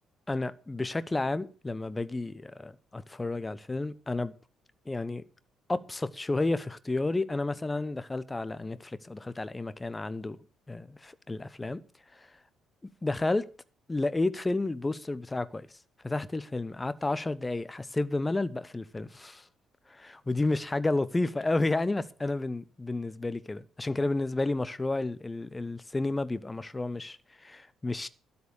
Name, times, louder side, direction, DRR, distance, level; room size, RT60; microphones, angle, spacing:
voice 1, 0.3-4.3 4.9-5.2 5.7-10.4 10.7-11.8 12.1-12.3 13.0-13.4 13.9-15.7 16.0-19.5 19.9-28.1, left 2 dB, 20° left, 0.9 m, -31 dB
12.5 x 7.0 x 8.2 m
figure-of-eight pair, 45°, 0 cm